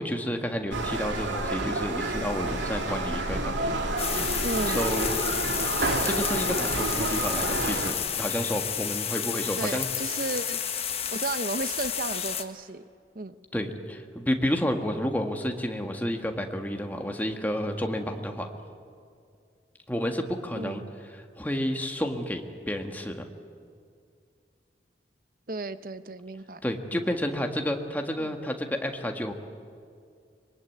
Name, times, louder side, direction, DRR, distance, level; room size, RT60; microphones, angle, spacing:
voice 1, 0.0-3.7 4.7-5.3 6.0-9.9 13.5-18.5 19.9-20.8 21.1-23.3 26.6-29.3, equal, 10° left, 4 dB, 1.7 m, -30 dB
sound 1, 0.7-7.9, right 2 dB, 90° right, 2.7 m, -29 dB
sound 2, 4.0-12.4, left 9 dB, 35° left, 1.3 m, -31 dB
voice 2, 4.4-4.8 9.6-10.8 11.1-12.9 13.1-13.3 20.5-20.9 25.5-26.6 26.9-27.0 28.2-28.3, right 2 dB, 50° right, 12 dB, 0.9 m, -34 dB
25.0 x 22.5 x 9.4 m, 2.3 s
head